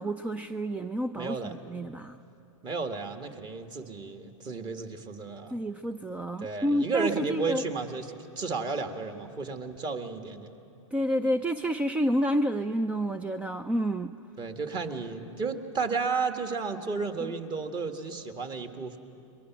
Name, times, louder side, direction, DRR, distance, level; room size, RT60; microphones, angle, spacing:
voice 1, 0.0-2.2 5.5-7.6 10.9-14.1 17.2-17.3, equal, 10° right, 11 dB, 0.5 m, -29 dB
voice 2, 1.2-1.6 2.6-5.6 6.4-10.5 14.4-19.0, right 4 dB, 25° right, 6 dB, 1.8 m, -33 dB
29.0 x 23.0 x 6.1 m, 2.9 s
hypercardioid pair, 125°, 17 cm